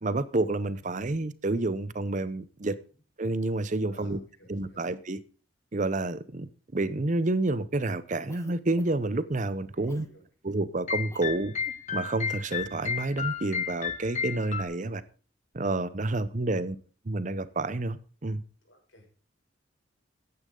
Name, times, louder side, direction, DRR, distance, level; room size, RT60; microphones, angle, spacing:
voice 1, 0.0-2.8 3.2-4.2 4.5-5.2 5.7-10.1 10.4-11.5 11.9-15.0 15.5-16.8 17.0-18.4, right 2 dB, 40° right, 0.7 m, -29 dB
voice 2, 3.9-4.8 9.7-10.2 18.6-19.1, equal, 75° left, 6.3 m, -55 dB
Cough, 8.3-9.2 9.9-10.1 11.1-11.3 11.6-11.8, left 1 dB, 15° left, 1.2 m, -50 dB
sound 1, 10.9-14.6, left 7 dB, 40° left, 1.3 m, -33 dB
14.0 x 9.7 x 3.8 m
head